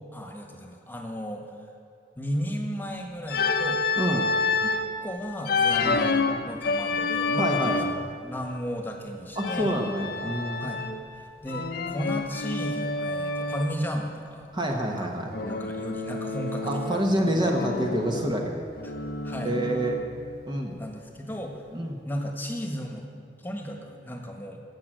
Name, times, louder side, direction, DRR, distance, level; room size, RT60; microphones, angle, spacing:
voice 1, 0.1-1.5 2.2-4.1 4.6-4.7 5.0-9.8 10.6-10.8 11.2-14.5 14.9-15.1 15.4-17.7 18.8-18.9 19.2-19.5 20.8-21.6 22.0-23.1 23.4-24.6, equal, 10° left, 2 dB, 1.5 m, -34 dB
Organ, 3.3-4.9 5.5-8.1 9.4-11.1 11.5-13.8 15.3-17.1 17.5-20.2, left 3 dB, 60° left, 0.9 m, -28 dB
voice 2, 4.0-4.3 5.8-6.0 7.3-7.9 9.4-10.7 14.5-15.3 16.6-18.6 19.4-20.0 20.5-20.8 21.7-22.0, right 1 dB, 25° right, 1 dB, 1.1 m, -27 dB
17.0 x 7.5 x 7.7 m, 2.4 s
head